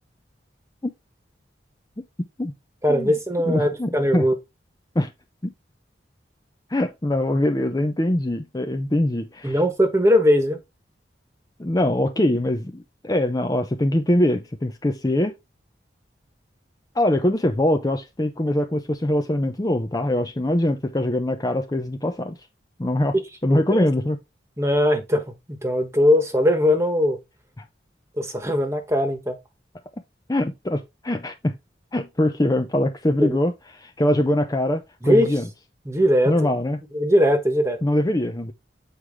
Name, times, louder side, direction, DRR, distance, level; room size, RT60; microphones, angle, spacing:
voice 1, 2.8-4.3 9.4-10.6 23.5-23.9 24.6-25.2 25.5-27.2 28.2-29.4 33.2-33.4 35.0-35.3 35.9-36.3 36.9-37.8, equal, 15° right, 1.3 m, -20 dB
voice 2, 3.4-4.2 5.0-5.1 5.4-5.5 6.7-9.6 11.6-15.3 16.9-22.4 22.8-23.1 23.4-24.2 30.3-31.5 31.9-35.4 36.3-36.8 37.8-38.5, left 1 dB, 20° left, 0.6 m, -23 dB
8.1 x 4.8 x 3.6 m
head